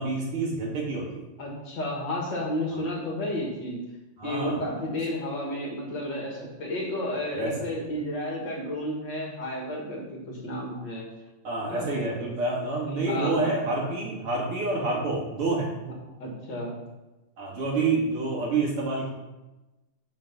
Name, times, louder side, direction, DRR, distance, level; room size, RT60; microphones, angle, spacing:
voice 1, 0.0-1.2 2.7-2.8 4.2-4.6 7.4-7.5 11.4-15.7 17.4-19.1, right 3 dB, 85° right, -3 dB, 3.2 m, -28 dB
voice 2, 1.4-3.8 4.2-11.1 11.7-11.8 13.0-13.5 16.2-16.8, left 1 dB, 55° left, -2 dB, 2.7 m, -32 dB
6.6 x 6.2 x 6.1 m, 1.0 s
omnidirectional pair, 2.3 m